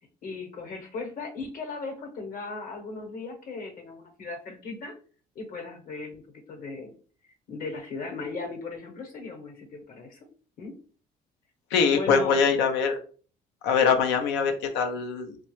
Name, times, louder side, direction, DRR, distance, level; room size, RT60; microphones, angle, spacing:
voice 1, 0.2-4.9 5.3-7.0 7.5-10.3 10.6-10.7 11.9-12.4, left 3 dB, 55° left, 3 dB, 1.0 m, -37 dB
voice 2, 11.7-13.0 13.6-15.4, left 6 dB, 85° left, 6 dB, 0.6 m, -23 dB
3.0 x 2.2 x 3.0 m, 0.40 s
cardioid pair, 110°, 17 cm